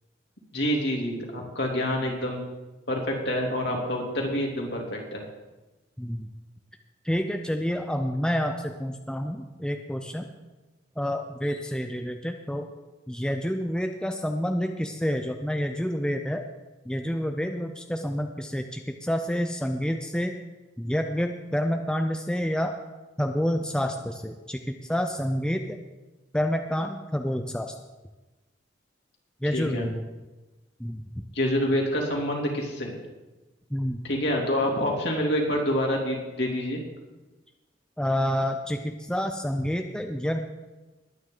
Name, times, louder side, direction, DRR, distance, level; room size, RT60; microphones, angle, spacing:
voice 1, 0.5-2.4 2.9-5.2 29.5-29.8 31.3-32.9 34.0-36.8, equal, 60° left, -1 dB, 3.0 m, -27 dB
voice 2, 6.0-6.3 7.0-10.3 11.0-12.7 13.1-16.4 16.9-20.4 20.8-22.7 23.2-25.8 26.3-27.7 29.4-30.1 30.8-31.0 33.7-34.0 38.0-40.4, equal, 5° left, 5 dB, 0.5 m, -28 dB
20.5 x 9.6 x 3.9 m, 1.1 s
head